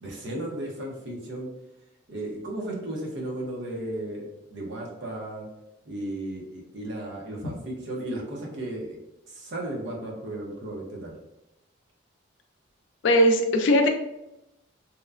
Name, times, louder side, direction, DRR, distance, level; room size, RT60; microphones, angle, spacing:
voice 1, 0.0-1.5 2.1-5.5 5.9-9.0 9.3-11.2, right 1 dB, 60° right, -2 dB, 0.7 m, -35 dB
voice 2, 13.0-13.9, equal, 65° left, 5 dB, 0.4 m, -19 dB
2.9 x 2.1 x 2.4 m, 0.89 s
head